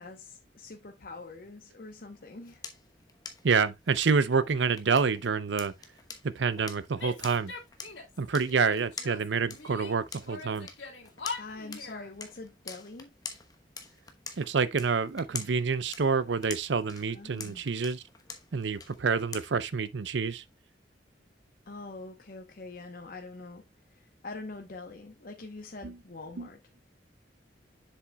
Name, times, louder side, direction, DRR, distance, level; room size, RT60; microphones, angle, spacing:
voice 1, 0.0-2.6 11.4-13.1 17.1-17.6 21.7-23.6 23.9-26.8, left 3 dB, 55° left, 0.9 m, -44 dB
sound 1, 2.1-19.8, left 5 dB, 20° left, 1.0 m, -47 dB
voice 2, 3.4-5.7 6.2-7.5 8.2-10.7 14.4-18.0 18.5-20.4 25.8-25.9 26.4-26.5, right 5 dB, 90° right, 0.6 m, -28 dB
Female speech woman speaking / Yell, 7.0-8.2 8.5-9.9 10.3-12.1, left 4 dB, 80° left, 2.4 m, -42 dB
7.4 x 7.0 x 2.3 m
head